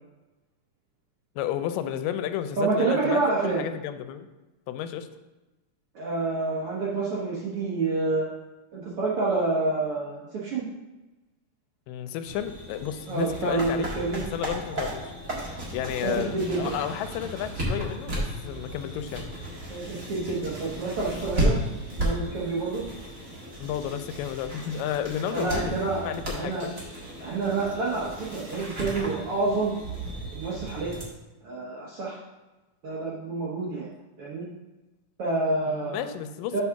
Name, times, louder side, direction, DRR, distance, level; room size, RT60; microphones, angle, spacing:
voice 1, 1.4-4.3 4.7-5.1 11.9-13.9 14.3-15.1 15.7-19.3 23.6-26.7 35.7-36.6, left 10 dB, 90° left, 10 dB, 2.2 m, -32 dB
voice 2, 2.6-3.6 5.9-8.3 8.7-10.6 13.1-14.2 14.7-14.9 16.0-16.7 19.7-21.6 22.0-22.8 25.3-26.7 27.2-29.7 30.3-31.0 31.4-32.2 32.8-33.9 34.2-34.5 35.2-36.1 36.5-36.6, right 3 dB, 70° right, -5 dB, 1.4 m, -28 dB
sound 1, 12.2-31.0, right 1 dB, 40° right, 1.6 m, -34 dB
7.2 x 4.0 x 5.7 m, 1.1 s
omnidirectional pair, 3.8 m